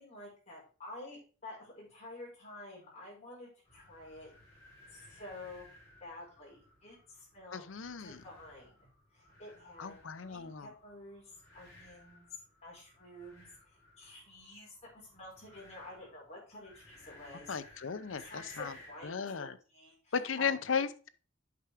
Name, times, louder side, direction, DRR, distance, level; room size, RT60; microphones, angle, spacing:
voice 1, 0.0-4.3 4.9-5.7 6.0-7.6 8.0-9.9 10.2-12.3 12.6-17.9 18.2-20.5, left 2 dB, 35° left, -5 dB, 5.4 m, -50 dB
sound 1, 3.6-19.1, left 1 dB, 20° left, 5.3 m, -59 dB
voice 2, 7.5-8.2 9.8-10.7 17.5-18.8 19.0-19.6 20.1-21.1, left 6 dB, 70° left, 12 dB, 0.7 m, -36 dB
8.5 x 5.7 x 4.9 m, 0.38 s
head